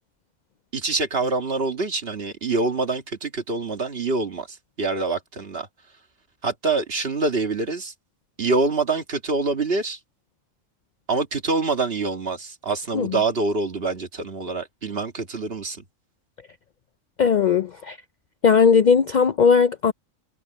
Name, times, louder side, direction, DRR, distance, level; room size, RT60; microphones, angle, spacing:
voice 1, 0.7-5.7 6.4-7.9 8.4-10.0 11.1-15.8, right 3 dB, 50° right, 1.9 m, -25 dB
voice 2, 17.2-18.0 18.4-19.9, left 6 dB, 85° left, 0.4 m, -18 dB
omnidirectional pair, 1.4 m